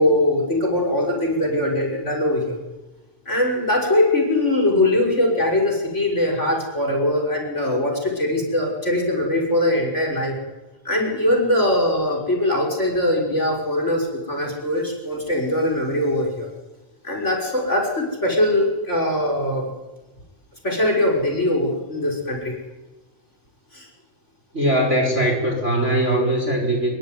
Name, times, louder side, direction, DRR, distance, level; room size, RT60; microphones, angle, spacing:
voice 1, 0.0-2.6 3.3-10.4 10.8-16.5 17.0-19.7 20.6-22.6 23.7-23.9, left 1 dB, 20° left, 2 dB, 6.1 m, -21 dB
voice 2, 24.5-27.0, right 1 dB, 20° right, 2 dB, 4.7 m, -20 dB
25.5 x 23.0 x 9.6 m, 1.1 s
omnidirectional pair, 3.3 m